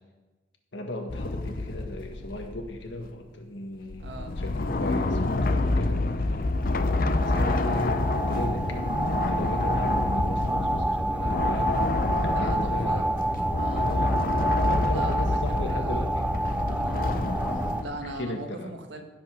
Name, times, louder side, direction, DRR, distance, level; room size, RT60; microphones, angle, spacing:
voice 1, 0.7-11.7 12.1-13.4 13.7-14.2 14.5-16.3 18.0-18.7, left 1 dB, 80° left, 3 dB, 1.7 m, -36 dB
sound 1, 1.1-3.0 3.9-18.2, left 2 dB, 50° left, 0.6 m, -28 dB
voice 2, 4.0-4.4 12.3-13.1 13.6-13.9 14.9-16.1 16.8-17.2 17.5-19.0, right 2 dB, 75° right, 4 dB, 1.5 m, -39 dB
sound 2, 6.7-17.8, right 1 dB, 5° right, 0.3 m, -29 dB
16.0 x 5.5 x 6.3 m, 1.1 s
head